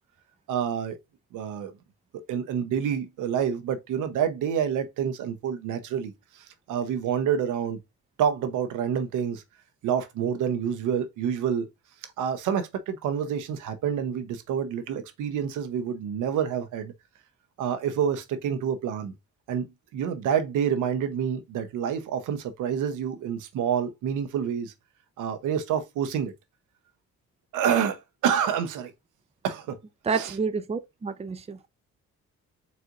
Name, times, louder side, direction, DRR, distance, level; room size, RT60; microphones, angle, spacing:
voice 1, 0.5-1.0 1.3-1.7 2.3-7.8 8.2-9.4 9.8-11.7 12.2-16.9 17.6-19.1 19.5-24.7 25.2-26.3 27.5-28.9 29.4-29.8 30.1-30.4, right 8 dB, 85° right, 0.8 m, -28 dB
voice 2, 30.1-31.6, right 5 dB, 20° right, 0.5 m, -29 dB
4.3 x 4.0 x 2.5 m
cardioid pair, 90°, 30 cm